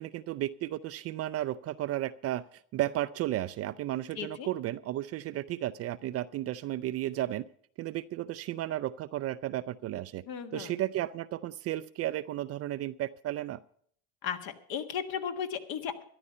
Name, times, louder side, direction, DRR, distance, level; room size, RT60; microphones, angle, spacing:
voice 1, 0.0-7.5 7.8-10.2 10.5-13.6, right 14 dB, 35° right, 14 dB, 0.4 m, -33 dB
voice 2, 4.2-4.5 10.3-10.7 14.2-16.0, left 7 dB, 55° left, 7 dB, 1.6 m, -35 dB
13.0 x 11.0 x 5.5 m, 0.62 s
hypercardioid pair, 95°, 42 cm